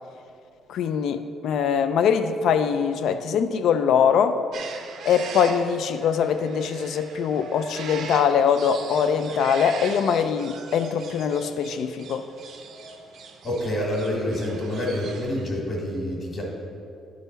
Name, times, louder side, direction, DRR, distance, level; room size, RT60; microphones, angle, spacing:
voice 1, 0.7-4.4 5.0-12.3, left 7 dB, 70° left, 10 dB, 0.4 m, -22 dB
sound 1, 4.5-15.5, right 5 dB, 65° right, 0.6 m, -41 dB
voice 2, 13.4-16.4, left 1 dB, 35° left, -2 dB, 1.7 m, -27 dB
10.5 x 3.9 x 4.0 m, 2.5 s
cardioid pair, 140°, 0 cm